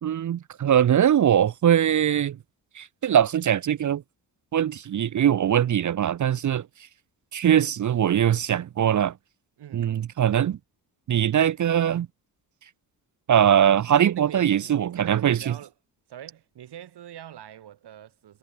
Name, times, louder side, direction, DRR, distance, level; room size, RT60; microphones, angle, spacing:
voice 1, 0.0-2.4 2.8-4.0 4.5-6.6 7.3-9.1 9.7-10.6 11.1-12.1 13.3-15.5, right 9 dB, 50° right, 0.7 m, -21 dB
voice 2, 9.6-10.0 13.9-15.7 16.1-18.4, right 11 dB, 85° right, 5.5 m, -44 dB
cardioid pair, 110°, 39 cm